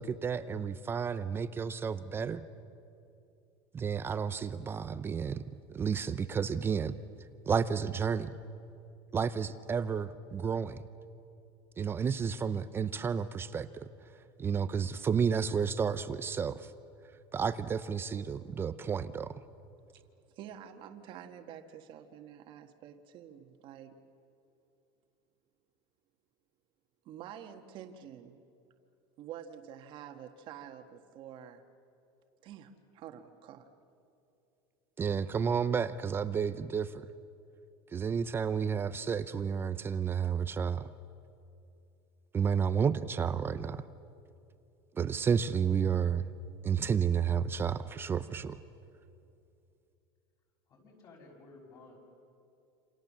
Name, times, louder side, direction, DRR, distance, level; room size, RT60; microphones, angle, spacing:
voice 1, 0.0-2.4 3.7-7.0 7.5-8.4 9.1-10.8 11.8-13.9 14.4-16.7 17.3-19.4 35.0-37.1 37.9-40.9 42.3-43.8 45.0-46.2 46.6-48.6, right 6 dB, 15° right, 13 dB, 0.6 m, -31 dB
voice 2, 20.3-23.9 27.0-28.4 29.2-31.6 32.4-33.7, right 9 dB, 40° right, 6 dB, 1.6 m, -48 dB
voice 3, 50.7-52.0, left 3 dB, 30° left, 2 dB, 6.1 m, -54 dB
28.0 x 28.0 x 7.4 m, 2.7 s
supercardioid pair, 160°, 13 cm